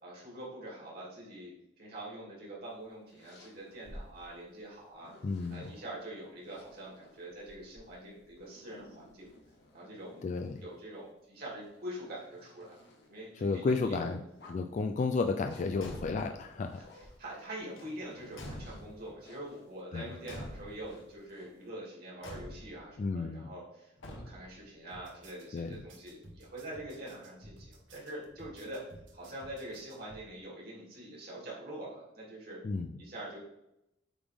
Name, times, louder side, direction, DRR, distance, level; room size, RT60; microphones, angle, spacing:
voice 1, 0.0-5.1 5.5-9.3 9.7-10.3 10.6-12.8 13.1-14.1 16.8-28.8 29.1-32.6 33.0-33.4, right 1 dB, 55° right, -5 dB, 2.5 m, -45 dB
sound 1, 2.7-5.8 6.4-10.8 11.4-13.8 14.2-14.8 15.5-17.6 18.0-21.7, left 1 dB, 60° left, 1.2 m, -56 dB
voice 2, 5.2-5.7 10.2-10.6 13.4-14.2 14.5-16.8 19.9-20.1 23.0-23.5 25.5-25.7 32.6-33.0, left 4 dB, 40° left, 6 dB, 0.3 m, -32 dB
Car / Truck / Slam, 15.7-16.5 17.7-19.2 20.2-21.0 22.2-22.9 24.0-24.7, left 1 dB, 80° left, 1.2 m, -46 dB
sound 2, 24.9-30.2, right 1 dB, 75° right, 1.2 m, -54 dB
8.6 x 3.6 x 3.5 m, 0.84 s
head